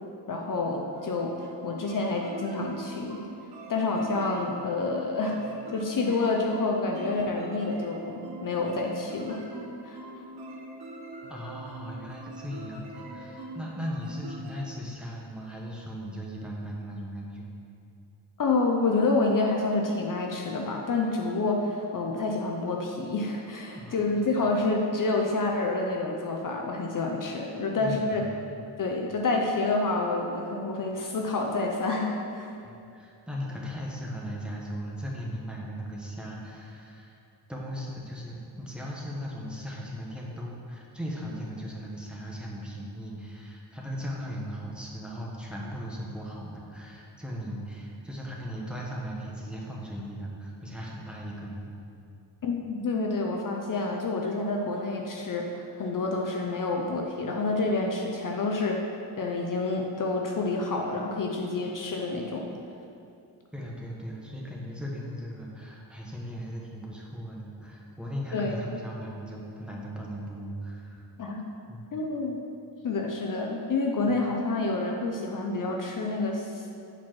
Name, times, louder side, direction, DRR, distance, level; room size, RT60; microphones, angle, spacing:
voice 1, 0.3-1.3 1.6-3.2 3.7-5.4 5.7-9.5 9.8-10.0 18.4-28.2 28.8-32.5 52.4-58.8 59.2-62.5 68.3-68.5 71.2-71.4 71.9-72.4 72.8-76.7, left 3 dB, 50° left, 1 dB, 0.7 m, -28 dB
sound 1, 0.9-14.7, right 1 dB, 60° right, 1.2 m, -43 dB
voice 2, 11.3-17.5 23.7-24.0 27.8-28.8 32.6-37.2 37.5-51.6 63.5-71.0 71.7-71.9 74.0-74.2, equal, ahead, -3 dB, 1.1 m, -38 dB
9.0 x 4.6 x 6.0 m, 2.6 s
wide cardioid pair, 155°, 43 cm